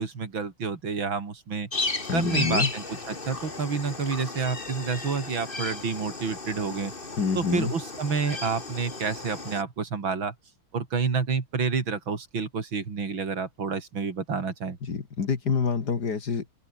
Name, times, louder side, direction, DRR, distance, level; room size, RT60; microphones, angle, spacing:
voice 1, 0.0-1.7 2.1-6.9 7.4-10.3 10.7-14.8, right 5 dB, 70° right, 3.7 m, -29 dB
sound 1, 1.7-9.6, left 3 dB, 25° left, 2.6 m, -34 dB
voice 2, 2.1-2.7 7.2-7.7 14.8-16.5, left 5 dB, 50° left, 2.6 m, -27 dB
omnidirectional pair, 2.3 m